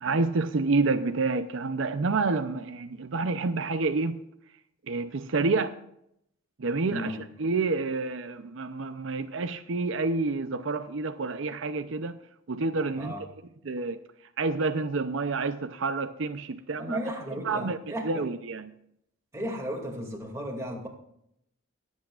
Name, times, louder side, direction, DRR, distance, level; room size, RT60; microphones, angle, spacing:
voice 1, 0.0-4.2 4.9-5.8 6.6-12.2 12.5-13.1 13.6-14.0 14.4-17.0 17.3-18.7, right 3 dB, 65° right, 0.6 m, -28 dB
voice 2, 6.9-7.2 13.0-13.2 16.8-18.2 19.3-20.9, equal, 15° right, 2.3 m, -34 dB
24.5 x 8.3 x 2.4 m
head